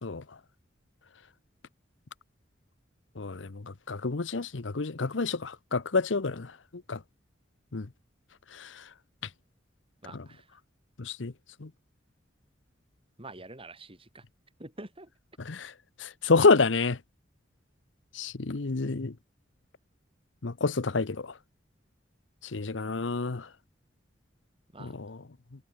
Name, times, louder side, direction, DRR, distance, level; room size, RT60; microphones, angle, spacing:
voice 1, 3.2-6.5 6.9-7.0 7.7-7.9 8.5-8.7 10.1-10.2 11.0-11.3 11.6-11.7 15.4-15.7 16.0-17.0 18.1-19.1 20.4-21.3 22.5-23.5 24.8-25.2, left 4 dB, 90° left, 0.9 m, -28 dB
voice 2, 10.0-10.4 13.2-14.2 14.6-15.1 24.7-24.9, right 2 dB, 30° right, 6.0 m, -46 dB
head